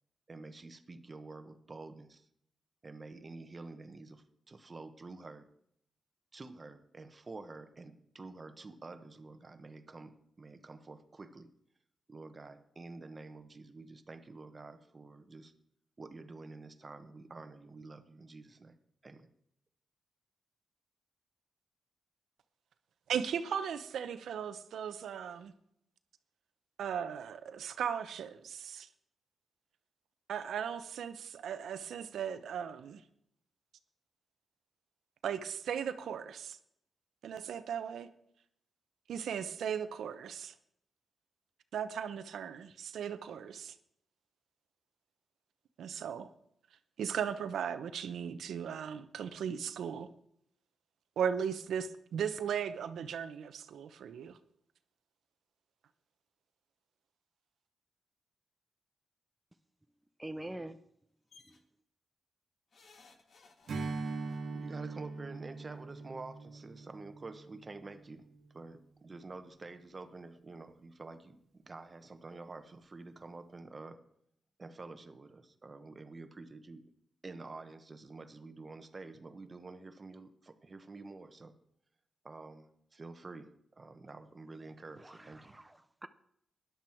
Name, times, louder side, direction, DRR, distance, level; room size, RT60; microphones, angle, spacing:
voice 1, 0.3-2.3 2.8-5.5 6.3-11.5 12.1-15.5 16.0-18.8 19.0-19.3 64.5-68.3 68.5-74.0 74.6-76.8 77.2-81.5 82.2-85.5, right 3 dB, 25° right, 9 dB, 1.1 m, -49 dB
voice 2, 23.1-25.5 26.8-28.9 30.3-33.0 35.2-36.6 37.2-38.1 39.1-40.5 41.7-43.7 45.8-46.3 47.0-50.1 51.2-54.4, right 8 dB, 90° right, 11 dB, 0.8 m, -37 dB
voice 3, 60.2-60.8 61.5-61.6 85.0-86.1, right 1 dB, 10° right, 9 dB, 0.5 m, -45 dB
sound 1, 61.3-61.6 62.7-64.4 65.6-65.7 66.0-66.1, left 4 dB, 50° left, 1.5 m, -60 dB
Strum, 63.7-68.5, right 3 dB, 55° right, 1.4 m, -42 dB
13.5 x 10.5 x 4.5 m, 0.72 s
wide cardioid pair, 140°, 0 cm